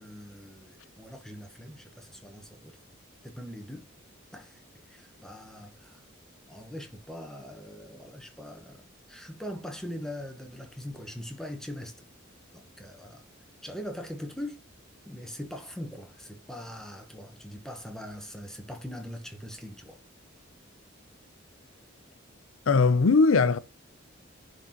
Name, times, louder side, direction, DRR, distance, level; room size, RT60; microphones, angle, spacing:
voice 1, 0.0-2.8 3.2-3.8 4.3-6.0 6.5-8.8 9.1-12.0 12.5-13.2 13.6-14.6 15.0-20.0, equal, 5° left, 1.1 m, -41 dB
voice 2, 22.7-23.6, left 4 dB, 85° left, 0.6 m, -20 dB
11.0 x 3.9 x 3.0 m
head